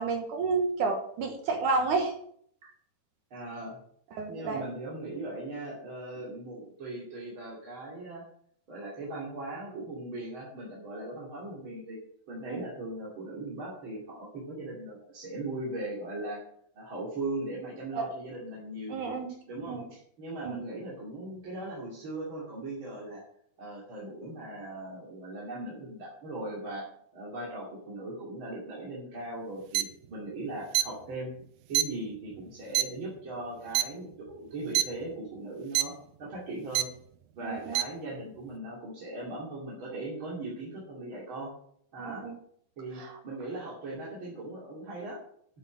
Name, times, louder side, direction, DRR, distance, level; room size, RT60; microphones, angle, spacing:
voice 1, 0.0-2.1 4.1-4.6 12.5-12.6 17.9-18.1 18.9-19.3 19.7-19.9 20.4-20.5 37.4-37.7 42.0-42.3 43.0-43.1, right 4 dB, 65° right, 4 dB, 2.3 m, -30 dB
voice 2, 3.3-3.8 4.3-8.2 8.7-12.0 12.3-16.5 16.7-19.0 19.5-23.2 23.6-31.3 31.7-35.9 36.2-36.9 37.4-41.5 41.9-42.3 42.8-45.2, right 2 dB, 35° right, -6 dB, 2.9 m, -39 dB
sound 1, 29.7-29.8 30.7-30.8 31.8-31.9 32.8-32.9 33.8-33.9 34.8-34.9 35.8-35.9 36.8-36.9 37.8-37.9, right 14 dB, 85° right, 2.0 m, -23 dB
10.0 x 7.6 x 6.3 m, 0.65 s
omnidirectional pair, 4.7 m